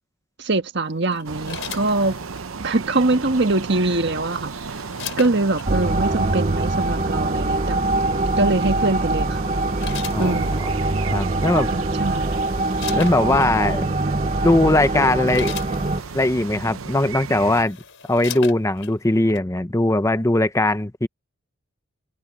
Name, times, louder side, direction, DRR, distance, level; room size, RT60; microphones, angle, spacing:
voice 1, 0.4-2.2 2.6-4.5 5.2-7.8 8.4-9.4 10.2-10.7 11.7-12.4, right 2 dB, 55° right, 1.5 m, -23 dB
sound 1, 1.1-2.5 3.8-5.7 6.7-7.0 8.6-8.9 9.5-10.8 11.6-11.7 12.0-13.5 14.2-14.4 14.8-16.3 17.0-17.1 17.4-18.9 19.4-19.5, left 7 dB, 65° left, 5.2 m, -37 dB
sound 2, 1.2-17.6, right 5 dB, 75° right, 0.8 m, -34 dB
sound 3, 5.7-16.0, right 2 dB, 30° right, 0.7 m, -23 dB
voice 2, 11.1-11.7 12.9-13.9 14.4-15.5 16.1-17.8 18.1-21.1, left 2 dB, 15° left, 0.7 m, -20 dB
head